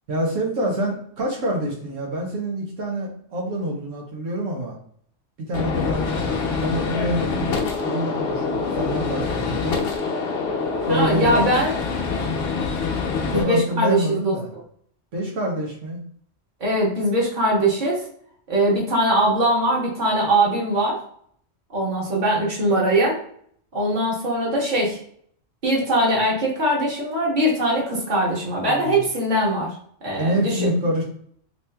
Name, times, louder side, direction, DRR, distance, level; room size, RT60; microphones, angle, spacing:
voice 1, 0.1-4.8 5.4-9.8 10.9-11.5 13.3-14.5 15.1-16.0 28.6-29.1 30.1-31.0, right 1 dB, 90° right, -2 dB, 1.2 m, -26 dB
Gunshot gunfire, 5.5-13.4, left 4 dB, 60° left, 0.9 m, -25 dB
voice 2, 10.9-11.7 13.3-14.4 16.6-18.0 18.5-21.0 21.7-23.2 23.7-25.0 25.6-29.7 30.0-30.7, right 1 dB, 40° right, -4 dB, 1.3 m, -21 dB
3.2 x 2.8 x 3.3 m, 0.63 s
omnidirectional pair, 1.3 m